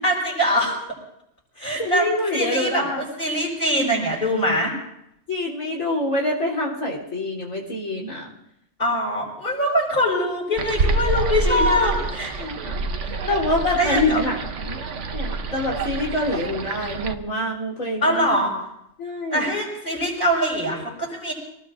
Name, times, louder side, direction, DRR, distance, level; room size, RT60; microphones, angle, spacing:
voice 1, 0.0-0.7 1.6-4.7 8.8-12.3 13.8-14.2 18.0-18.5 19.3-21.3, equal, 35° left, -8 dB, 6.1 m, -23 dB
voice 2, 1.8-3.0 5.3-8.2 11.5-12.0 12.4-12.7 13.3-18.3 19.0-19.5, left 2 dB, 85° left, -3 dB, 4.1 m, -26 dB
sound 1, 10.6-17.2, right 3 dB, 65° right, 1.3 m, -27 dB
27.0 x 19.0 x 2.6 m, 0.79 s
omnidirectional pair, 1.4 m